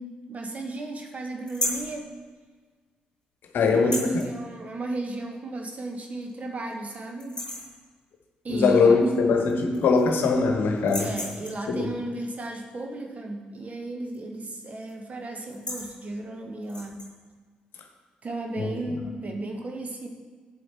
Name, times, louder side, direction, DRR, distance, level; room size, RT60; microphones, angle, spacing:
voice 1, 0.0-2.1 3.7-7.4 8.4-8.9 11.0-17.0 18.2-20.1, right 2 dB, 35° right, 3 dB, 1.3 m, -35 dB
sound 1, 1.5-1.9 3.7-4.3 5.6-5.7 6.2-6.3 6.7-6.9 7.2-7.8 9.1-9.2 9.5-10.2 10.8-11.7 14.1-14.4 14.6-14.9 15.4-15.9 16.6-17.1, left 1 dB, 90° left, 0.8 m, -33 dB
voice 2, 3.5-4.2 8.5-11.1 11.7-11.9 18.6-18.7, left 4 dB, 55° left, 4 dB, 1.1 m, -21 dB
8.6 x 7.7 x 4.4 m, 1.5 s
figure-of-eight pair, 40°, 4 cm